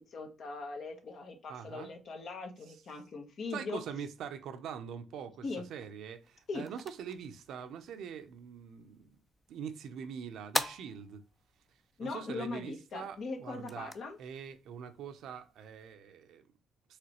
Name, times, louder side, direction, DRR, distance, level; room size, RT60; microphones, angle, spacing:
voice 1, 0.0-3.8 5.4-5.7 6.5-6.7 12.0-14.2, left 3 dB, 60° left, 1.2 m, -40 dB
voice 2, 1.5-1.9 2.7-2.8 3.5-5.4 5.7-9.2 9.5-11.2 12.0-13.9 14.2-16.5, right 7 dB, 80° right, 0.7 m, -43 dB
sound 1, 6.1-15.9, left 1 dB, 15° left, 0.5 m, -44 dB
4.9 x 3.3 x 3.0 m
cardioid pair, 90°, 0 cm